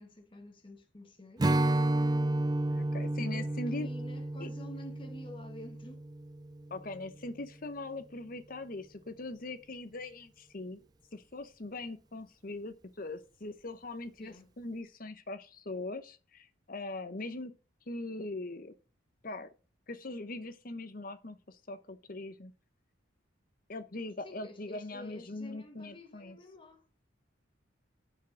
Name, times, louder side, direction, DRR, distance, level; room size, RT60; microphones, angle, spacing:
voice 1, 0.0-1.5 3.2-6.0 14.2-14.5 24.2-26.9, equal, 25° left, 1.2 m, -49 dB
Strum, 1.4-6.8, right 1 dB, 20° right, 0.3 m, -31 dB
voice 2, 2.6-3.9 4.4-4.5 6.7-10.8 11.1-17.5 17.9-18.7 19.2-19.5 19.9-22.5 23.7-26.4, left 2 dB, 45° left, 0.9 m, -41 dB
7.1 x 6.3 x 5.8 m
head